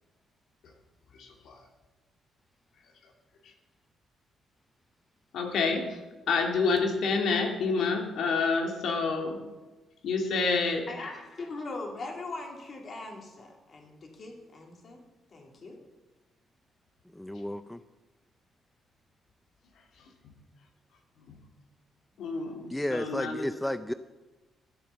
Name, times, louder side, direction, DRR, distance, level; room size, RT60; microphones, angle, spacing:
voice 1, 1.2-1.5 5.3-6.0 6.3-9.4 10.0-10.8 22.2-23.5, left 4 dB, 75° left, 2 dB, 2.3 m, -28 dB
voice 2, 10.9-15.0 15.3-15.8, left 3 dB, 45° left, 1 dB, 3.0 m, -40 dB
voice 3, 17.1-17.8 22.7-23.9, left 1 dB, 5° left, 11 dB, 0.4 m, -32 dB
12.0 x 8.2 x 7.0 m, 1.2 s
cardioid pair, 90°, 0 cm